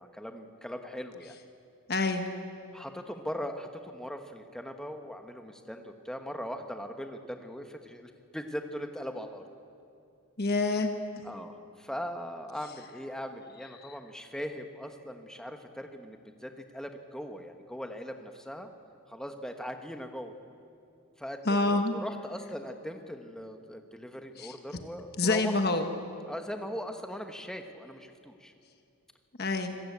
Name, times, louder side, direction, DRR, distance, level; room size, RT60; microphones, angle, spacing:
voice 1, 0.0-1.3 2.7-9.4 11.2-18.7 19.1-20.3 21.2-25.6 26.3-28.5, equal, 5° left, 5 dB, 1.2 m, -40 dB
voice 2, 1.9-2.3 10.4-10.9 21.5-22.0 24.4-24.5 25.2-25.9 29.4-29.8, left 3 dB, 45° left, 5 dB, 1.3 m, -27 dB
25.5 x 15.0 x 8.6 m, 2.5 s
head